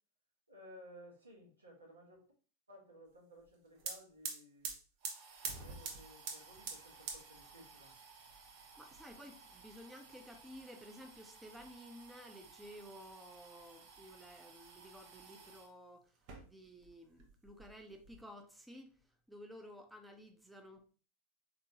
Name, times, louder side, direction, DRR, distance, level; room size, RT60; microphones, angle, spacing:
voice 1, 0.5-2.3 2.7-4.7 5.5-7.9, equal, 80° right, 1.5 m, -57 dB
sound 1, 3.5-3.6 3.8-15.7 16.2-16.9 17.2-18.2, right 5 dB, 45° right, 0.9 m, -49 dB
voice 2, 8.8-16.0 16.4-18.9 19.3-20.8, equal, 5° right, 0.7 m, -54 dB
4.1 x 3.6 x 2.8 m
figure-of-eight pair, 90°, 0 cm